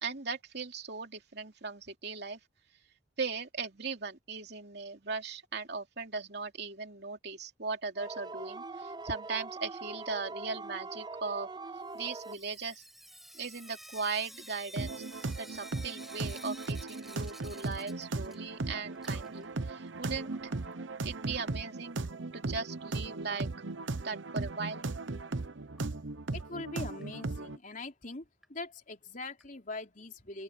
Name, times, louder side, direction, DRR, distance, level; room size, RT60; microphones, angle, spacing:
voice 1, 0.0-2.4 3.2-11.5 11.9-12.8 13.3-20.5 21.0-22.0 22.3-23.5 24.0-24.8, right 4 dB, 60° right, 3.0 m, -38 dB
sound 1, 8.0-12.4, right 3 dB, 20° right, 0.9 m, -42 dB
Sink (filling or washing) / Drip, 11.9-18.7 18.9-20.9 22.0-22.1 22.4-22.5 22.8-22.9 25.8-25.9 26.4-26.5 27.0-27.1 27.7-27.8 28.4-28.5 29.4-29.5, equal, ahead, 7.7 m, -52 dB
sound 2, 14.8-27.6, right 3 dB, 80° right, 1.0 m, -37 dB
voice 2, 26.3-28.2 28.5-30.4, left 3 dB, 45° left, 3.7 m, -42 dB
open air
head